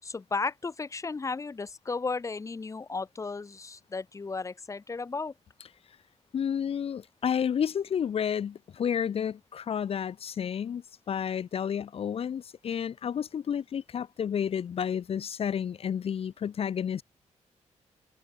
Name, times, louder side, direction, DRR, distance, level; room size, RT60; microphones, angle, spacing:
voice 1, 0.0-5.3, left 4 dB, 25° left, 4.6 m, -34 dB
voice 2, 6.3-17.0, left 8 dB, 50° left, 1.2 m, -31 dB
wide cardioid pair, 175°, 12 cm